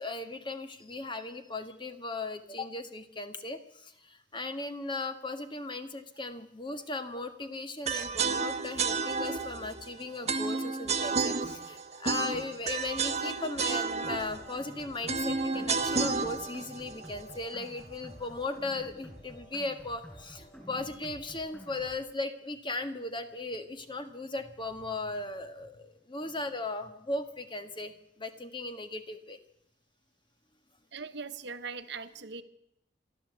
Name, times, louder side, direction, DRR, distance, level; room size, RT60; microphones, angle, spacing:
voice 1, 0.0-29.4, left 2 dB, 25° left, 8 dB, 1.7 m, -37 dB
sound 1, 7.9-17.9, right 4 dB, 35° right, 1.2 m, -32 dB
sound 2, 14.0-22.0, equal, 10° left, 6.5 m, -50 dB
voice 2, 30.9-32.4, right 5 dB, 65° right, 10 dB, 1.3 m, -40 dB
27.5 x 12.0 x 8.2 m, 0.81 s
head